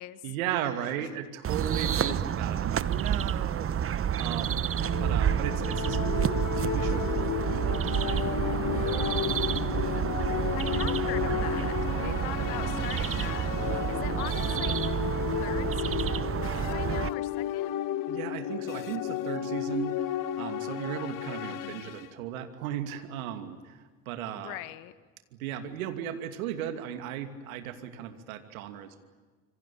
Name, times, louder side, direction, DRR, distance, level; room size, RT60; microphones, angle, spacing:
voice 1, 0.2-3.9 4.2-4.7 5.0-9.1 16.9-17.0 18.1-24.6 25.3-29.0, right 10 dB, 75° right, 8 dB, 2.7 m, -36 dB
sound 1, 1.4-17.1, right 9 dB, 30° right, 1.1 m, -29 dB
sound 2, 4.8-22.1, left 11 dB, 45° left, 1.6 m, -33 dB
sound 3, 8.1-14.8, left 4 dB, 30° left, 7.2 m, -42 dB
voice 2, 10.5-13.5 13.9-14.8 15.4-16.4 16.7-17.7 21.5-21.9 24.3-24.9, left 18 dB, 65° left, 14 dB, 1.6 m, -41 dB
27.0 x 25.0 x 8.8 m, 1.4 s
hypercardioid pair, 65°, 43 cm